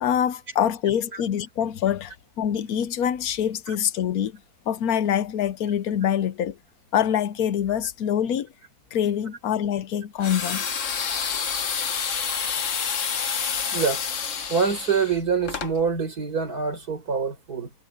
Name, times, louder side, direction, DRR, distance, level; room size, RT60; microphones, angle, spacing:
voice 1, 0.0-4.4 4.7-6.6 6.9-8.5 8.9-10.6, left 9 dB, 75° left, 1.2 m, -25 dB
sound 1, 10.2-15.7, left 6 dB, 55° left, 1.5 m, -28 dB
voice 2, 13.7-14.0 14.5-17.7, right 5 dB, 80° right, 4.8 m, -25 dB
omnidirectional pair, 1.6 m